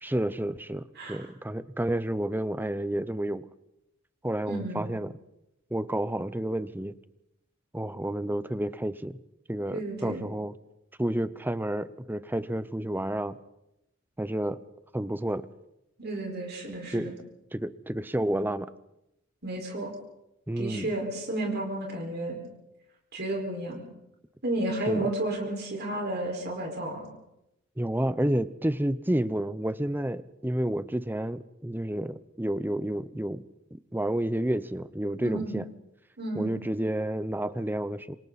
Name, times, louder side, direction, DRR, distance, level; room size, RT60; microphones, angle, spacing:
voice 1, 0.0-3.4 4.2-5.1 5.7-6.9 7.7-9.2 9.5-10.5 11.0-13.4 14.2-14.6 14.9-15.5 16.9-17.1 17.5-18.7 20.5-20.9 24.9-25.1 27.8-33.4 33.7-35.6 36.3-38.2, right 1 dB, 10° right, 14 dB, 0.7 m, -30 dB
voice 2, 0.9-1.3 4.5-4.9 9.7-10.2 16.0-17.1 19.4-19.9 20.6-22.4 23.1-23.8 24.4-27.1 35.2-35.6 36.2-36.6, right 1 dB, 50° right, 0 dB, 5.0 m, -32 dB
27.5 x 26.0 x 4.2 m, 0.87 s
head